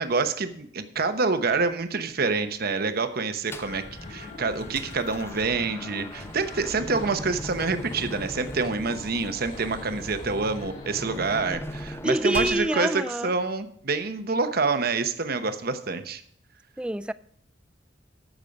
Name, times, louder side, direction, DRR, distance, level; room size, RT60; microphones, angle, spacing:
voice 1, 0.0-3.8 4.1-16.2, right 4 dB, 55° right, 1.0 m, -27 dB
sound 1, 3.5-3.8 4.3-12.7, left 1 dB, 15° left, 0.7 m, -39 dB
sound 2, 3.6-11.5, left 2 dB, 45° left, 2.9 m, -42 dB
voice 2, 12.0-13.3 16.8-17.1, right 1 dB, 5° right, 0.3 m, -26 dB
14.0 x 6.3 x 5.3 m
head